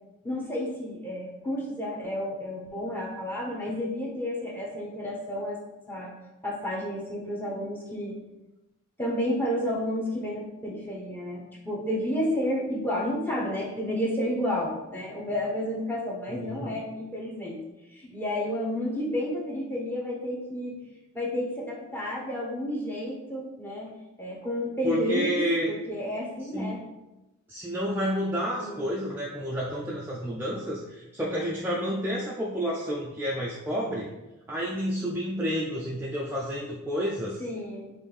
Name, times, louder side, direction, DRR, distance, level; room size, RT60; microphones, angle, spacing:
voice 1, 0.2-5.6 5.9-6.1 6.4-8.2 9.0-17.6 17.9-20.8 21.1-23.9 24.2-26.8 28.6-28.9 37.4-37.9, left 1 dB, 10° left, -4 dB, 0.7 m, -31 dB
voice 2, 16.3-16.8 24.8-25.7 26.4-26.7 27.5-34.1 34.5-37.4, equal, 10° right, -5 dB, 0.3 m, -30 dB
5.4 x 2.6 x 3.3 m, 0.99 s
head